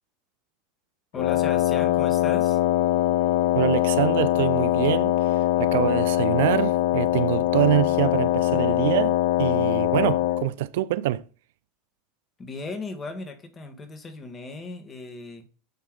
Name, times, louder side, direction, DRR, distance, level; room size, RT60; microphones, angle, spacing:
Wind instrument woodwind instrument, 1.1-10.5, left 13 dB, 70° left, 0.4 m, -22 dB
voice 1, 1.1-2.6 12.4-15.5, left 3 dB, 25° left, 1.3 m, -37 dB
voice 2, 3.5-5.2 5.6-11.2, right 14 dB, 70° right, 0.3 m, -25 dB
9.3 x 3.3 x 3.6 m
hypercardioid pair, 95°, 0 cm